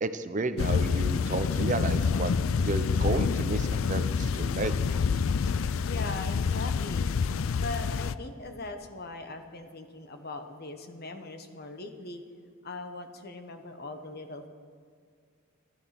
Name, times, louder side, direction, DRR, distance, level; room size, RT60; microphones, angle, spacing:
voice 1, 0.0-2.3 2.6-4.7, right 3 dB, 40° right, 10 dB, 0.6 m, -32 dB
sound 1, 0.6-8.2, left 5 dB, 80° left, 0.4 m, -27 dB
voice 2, 5.8-7.1 7.6-12.2 12.6-14.5, left 2 dB, 50° left, 7 dB, 1.1 m, -40 dB
13.0 x 13.0 x 5.9 m, 2.1 s
head